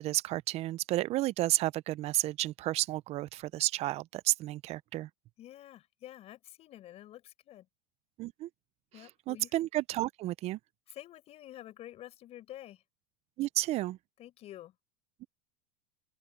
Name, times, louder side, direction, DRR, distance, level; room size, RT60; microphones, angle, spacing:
voice 1, 0.0-5.1 8.2-8.5 9.3-10.6 13.4-14.0, right 16 dB, 45° right, 0.7 m, -31 dB
voice 2, 5.4-7.7 8.9-9.5 10.9-12.8 14.2-14.7, left 13 dB, 45° left, 5.7 m, -49 dB
open air
hypercardioid pair, 105°, 15 cm